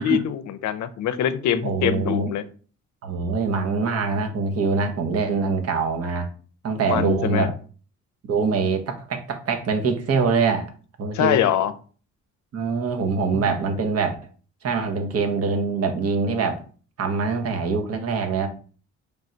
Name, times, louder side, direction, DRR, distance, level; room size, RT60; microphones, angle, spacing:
voice 1, 0.0-2.4 6.9-7.5 11.1-11.7 13.3-13.4, left 10 dB, 70° left, 13 dB, 0.5 m, -23 dB
voice 2, 1.6-2.3 3.0-6.3 6.6-7.5 8.3-10.7 11.0-11.4 12.5-14.1 14.6-16.6 17.0-18.5, right 4 dB, 55° right, 5 dB, 0.9 m, -24 dB
3.5 x 2.6 x 4.3 m, 0.40 s
cardioid pair, 90°, 30 cm